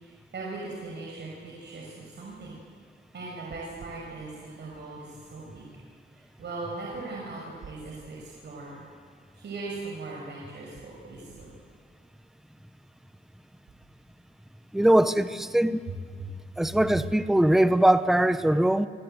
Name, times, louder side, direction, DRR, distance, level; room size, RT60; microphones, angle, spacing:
voice 1, 0.0-2.6 3.1-5.6 6.4-8.8 9.4-11.5 16.2-16.3 16.6-16.7, right 3 dB, 65° right, -3 dB, 5.7 m, -39 dB
voice 2, 14.7-15.8 16.6-18.9, right 1 dB, ahead, 12 dB, 0.7 m, -21 dB
28.0 x 26.0 x 7.9 m, 2.1 s
wide cardioid pair, 180°, 19 cm